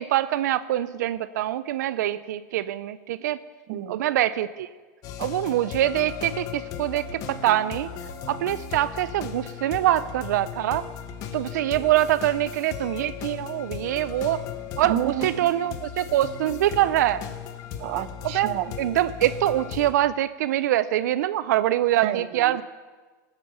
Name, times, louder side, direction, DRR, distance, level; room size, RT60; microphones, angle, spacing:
voice 1, 0.0-3.4 3.9-4.7 5.2-7.9 8.3-10.9 11.3-14.4 14.8-17.2 18.3-18.5 18.8-22.6, right 13 dB, 85° right, 15 dB, 0.5 m, -24 dB
voice 2, 3.7-4.0 14.8-15.5 17.8-18.7 22.0-22.6, right 12 dB, 55° right, 15 dB, 0.7 m, -30 dB
sound 1, 5.0-19.9, left 8 dB, 40° left, 1.0 m, -37 dB
16.5 x 9.0 x 6.8 m, 1.4 s
supercardioid pair, 155°, 9 cm